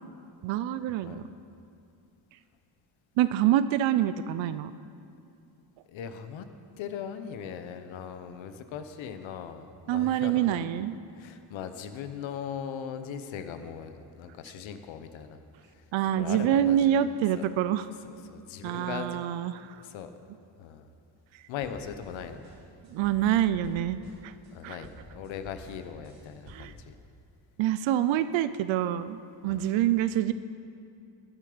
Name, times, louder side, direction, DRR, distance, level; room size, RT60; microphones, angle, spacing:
voice 1, 0.4-1.3 3.2-4.7 9.9-10.9 15.9-17.9 18.6-19.8 22.9-24.3 24.6-24.8 26.5-26.7 27.6-30.3, right 11 dB, 85° right, 13 dB, 0.6 m, -26 dB
voice 2, 5.9-6.5 6.8-10.6 11.2-15.4 15.7-15.8 16.2-17.0 17.4-17.5 18.0-19.2 19.7-20.1 20.6-20.9 21.5-22.4 24.5-26.9 29.5-29.7, left 8 dB, 90° left, 9 dB, 1.0 m, -39 dB
sound 1, 21.5-24.5 24.8-26.8, right 1 dB, 35° right, 2.5 m, -50 dB
21.0 x 7.4 x 5.0 m, 2.5 s
cardioid pair, 170°, 45 cm